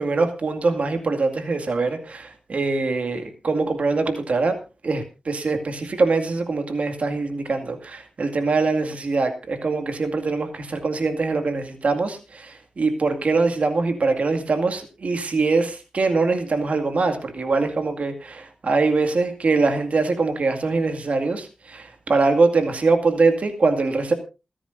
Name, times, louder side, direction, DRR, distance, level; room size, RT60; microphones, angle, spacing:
voice 1, 0.0-4.6 4.8-24.1, right 3 dB, 60° right, 6 dB, 2.2 m, -23 dB
28.5 x 10.0 x 2.6 m, 0.30 s
wide cardioid pair, 120°, 3 cm